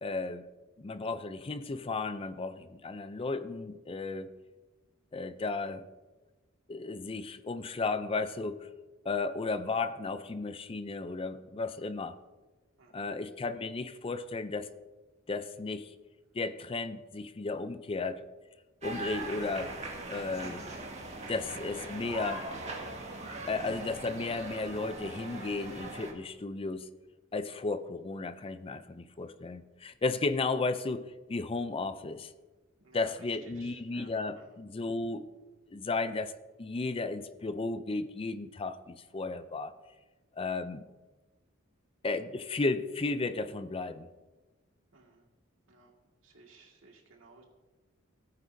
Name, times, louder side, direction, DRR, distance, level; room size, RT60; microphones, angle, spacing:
voice 1, 0.0-0.5 0.8-4.3 5.1-5.8 6.7-8.7 9.0-12.2 12.9-14.7 15.3-15.9 16.3-18.2 18.8-19.7 20.1-20.7 21.3-22.5 23.5-26.9 27.3-32.3 32.9-35.3 35.7-39.7 40.4-40.8 42.0-44.1, left 3 dB, 25° left, 12 dB, 0.4 m, -34 dB
voice 2, 12.8-13.1 32.8-34.6 44.9-45.3 45.7-45.9 46.2-47.4, right 4 dB, 70° right, 1 dB, 2.0 m, -56 dB
sound 1, 18.8-26.1, right 2 dB, 35° right, 1.8 m, -41 dB
17.0 x 9.3 x 2.7 m, 1.2 s
head